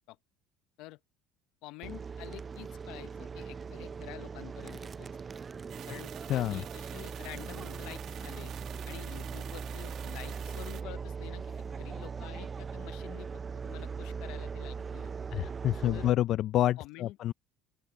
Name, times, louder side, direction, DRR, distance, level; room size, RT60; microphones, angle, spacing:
voice 1, 1.6-5.1 5.9-8.5 8.8-13.3 13.6-15.1 15.9-16.1 16.8-17.2, left 18 dB, 70° left, 0.8 m, -48 dB
sound 1, 1.8-16.1, right 5 dB, 25° right, 0.3 m, -40 dB
sound 2, 5.7-10.8, right 10 dB, 45° right, 1.3 m, -47 dB
voice 2, 6.3-6.6 15.3-17.3, left 13 dB, 50° left, 0.4 m, -28 dB
open air
cardioid pair, 130°, 0 cm